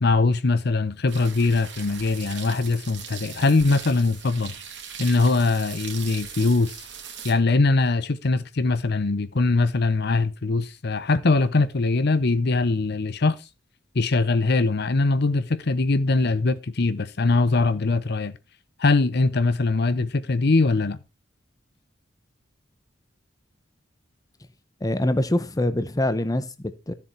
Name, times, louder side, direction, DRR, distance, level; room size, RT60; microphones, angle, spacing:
voice 1, 0.0-4.5 5.0-6.8 7.2-13.4 13.9-18.3 18.8-21.0, left 3 dB, 60° left, 0.8 m, -22 dB
sound 1, 1.1-7.3, right 7 dB, 70° right, 2.3 m, -39 dB
voice 2, 24.8-26.9, left 1 dB, 20° left, 0.9 m, -24 dB
13.0 x 7.1 x 4.5 m
head